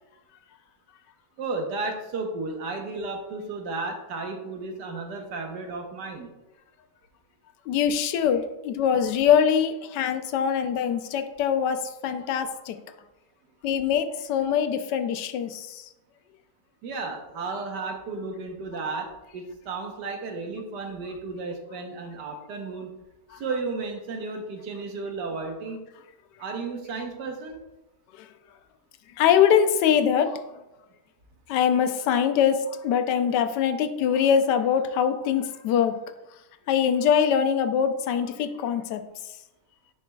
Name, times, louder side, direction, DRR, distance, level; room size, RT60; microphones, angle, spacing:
voice 1, 1.4-6.3 16.8-19.1 19.3-22.9 23.3-25.8 26.4-27.6, right 3 dB, 85° right, 3 dB, 1.5 m, -33 dB
voice 2, 7.7-12.8 13.6-15.9 28.2-28.3 29.2-30.4 31.5-36.0 36.7-39.0, left 8 dB, 85° left, 8 dB, 1.2 m, -23 dB
10.5 x 4.2 x 2.2 m, 1.0 s
omnidirectional pair, 1.8 m